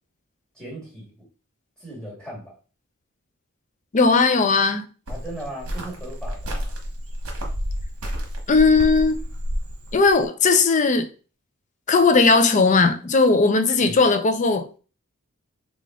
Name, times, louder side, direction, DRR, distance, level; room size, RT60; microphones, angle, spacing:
voice 1, 0.6-1.1 1.8-2.6 5.1-6.7 13.8-14.0, right 1 dB, 5° left, 1.7 m, -37 dB
voice 2, 3.9-4.9 8.5-9.2 9.9-11.1 11.9-14.8, left 4 dB, 35° left, 0.5 m, -18 dB
Cricket, 5.1-10.2, equal, 75° right, 1.0 m, -30 dB
3.4 x 2.5 x 3.6 m
head